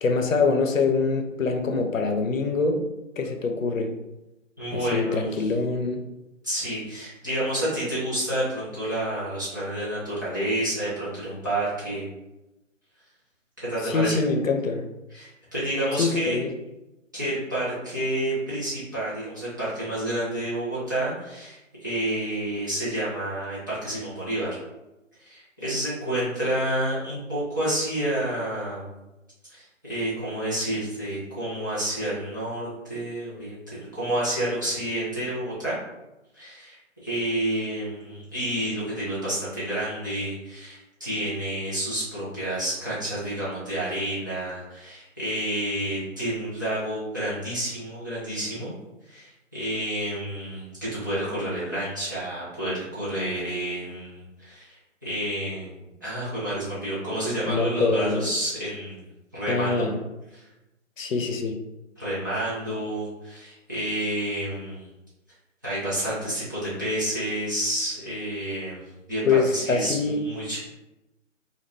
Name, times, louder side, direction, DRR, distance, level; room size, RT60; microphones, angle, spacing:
voice 1, 0.0-2.8 3.2-3.9 4.7-6.0 13.8-14.9 15.9-16.5 57.5-58.2 59.5-60.0 61.0-61.6 69.3-70.3, left 4 dB, 90° left, 4 dB, 0.5 m, -24 dB
voice 2, 4.6-5.5 6.4-12.1 13.6-14.2 15.1-16.4 17.1-24.5 25.2-28.9 29.5-35.8 36.3-48.7 49.1-54.8 55.0-59.9 60.3-60.4 62.0-64.9 65.6-68.8 69.1-70.6, right 1 dB, 15° right, -12 dB, 0.5 m, -29 dB
2.3 x 2.2 x 3.3 m, 0.99 s
figure-of-eight pair, 145°, 38 cm